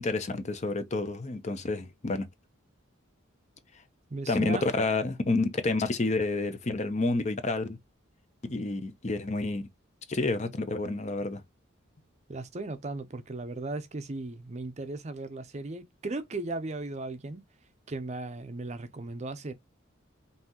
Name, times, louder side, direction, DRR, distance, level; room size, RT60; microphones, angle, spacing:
voice 1, 0.0-2.3 4.3-7.8 8.4-9.6 10.1-11.4, left 2 dB, 35° left, 0.6 m, -29 dB
voice 2, 4.1-4.6 12.3-17.4 17.9-19.5, right 2 dB, 35° right, 0.5 m, -36 dB
5.6 x 2.7 x 2.9 m
head